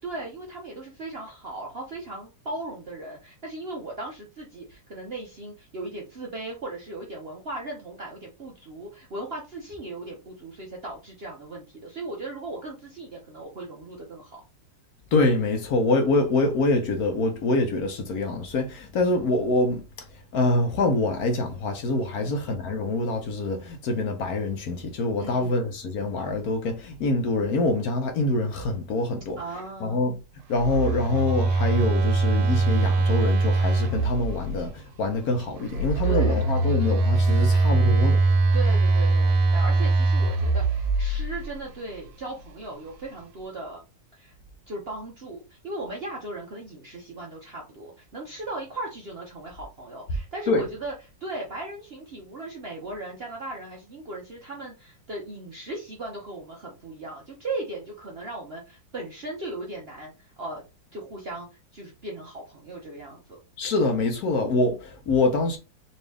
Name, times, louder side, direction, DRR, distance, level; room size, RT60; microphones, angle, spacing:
voice 1, 0.0-14.4 22.1-22.4 25.2-25.6 29.4-30.0 36.0-36.5 38.5-43.8 44.1-44.4 44.7-50.9 51.2-60.6 60.9-61.5 61.7-63.4, right 2 dB, 50° right, 0.7 m, -37 dB
voice 2, 15.1-19.8 20.3-29.4 29.8-30.1 30.5-38.2 50.5-50.6 63.6-65.6, left 2 dB, 60° left, 1.1 m, -25 dB
Telephone, 30.5-34.6 35.7-41.4, right 3 dB, 80° right, 1.4 m, -22 dB
4.1 x 2.7 x 3.3 m
omnidirectional pair, 2.0 m